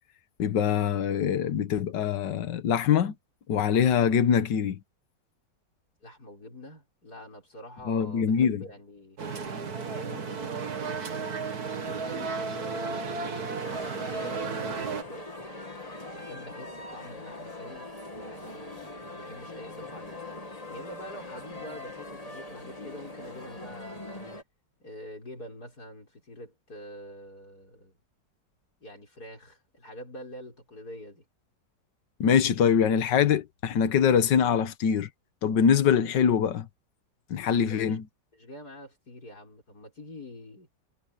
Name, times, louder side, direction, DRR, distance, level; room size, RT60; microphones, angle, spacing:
voice 1, 0.4-3.1 3.5-4.8 7.9-8.6 32.2-35.1 35.4-36.7 37.3-38.0, left 8 dB, 80° left, 1.8 m, -23 dB
voice 2, 6.0-9.2 9.9-15.3 16.1-20.2 20.7-24.3 24.8-28.0 28.8-31.3 37.7-38.0 38.3-40.7, left 1 dB, 60° left, 7.3 m, -45 dB
sound 1, 9.2-15.0, right 5 dB, 55° right, 2.4 m, -33 dB
sound 2, 13.6-24.4, left 2 dB, 20° left, 2.4 m, -42 dB
omnidirectional pair, 1.9 m